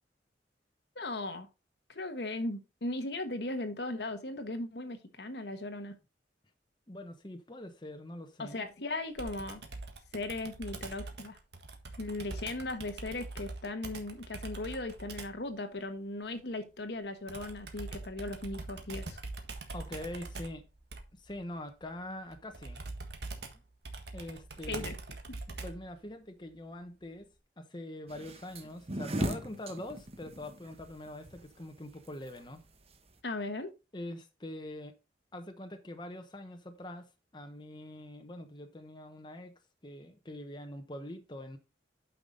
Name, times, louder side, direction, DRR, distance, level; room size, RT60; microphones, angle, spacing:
voice 1, 0.9-1.5 1.9-6.0 8.4-9.6 10.1-11.4 12.0-19.2 24.6-24.9 33.2-33.7, left 2 dB, 65° left, 1.2 m, -37 dB
voice 2, 6.9-8.6 19.7-20.6 21.2-22.8 24.1-25.0 25.6-27.3 27.6-32.6 33.9-34.9 35.3-41.6, left 1 dB, 25° left, 1.0 m, -44 dB
Computer keyboard, 9.2-15.4 17.3-25.9, right 3 dB, 65° right, 1.5 m, -43 dB
sound 1, 28.1-33.2, right 1 dB, 35° right, 1.1 m, -38 dB
8.7 x 5.9 x 3.9 m
head